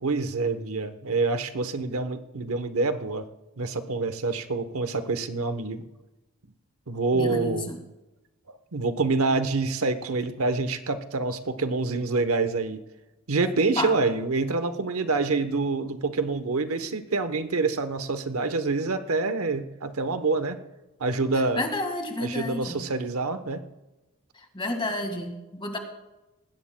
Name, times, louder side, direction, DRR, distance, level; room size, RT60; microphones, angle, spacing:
voice 1, 0.0-3.2 3.6-5.9 6.9-7.7 8.5-12.8 13.3-20.6 21.0-21.6 22.2-23.6, right 3 dB, 85° right, 9 dB, 0.9 m, -26 dB
voice 2, 7.1-7.8 13.4-13.9 21.5-22.8 24.5-25.8, left 2 dB, 25° left, 5 dB, 1.7 m, -31 dB
20.0 x 16.5 x 2.2 m, 1.0 s
head